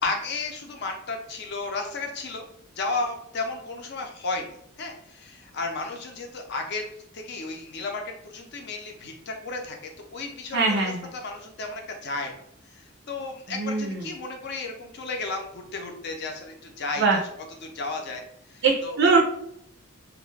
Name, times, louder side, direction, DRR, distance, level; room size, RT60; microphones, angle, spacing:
voice 1, 0.0-2.4 2.7-12.4 12.7-17.2 17.6-19.0, left 3 dB, 55° left, 2 dB, 0.5 m, -33 dB
voice 2, 10.5-11.1 13.5-14.0 17.0-17.2 18.6-19.2, right 4 dB, 55° right, 0 dB, 0.4 m, -22 dB
2.4 x 2.1 x 3.1 m, 0.72 s
head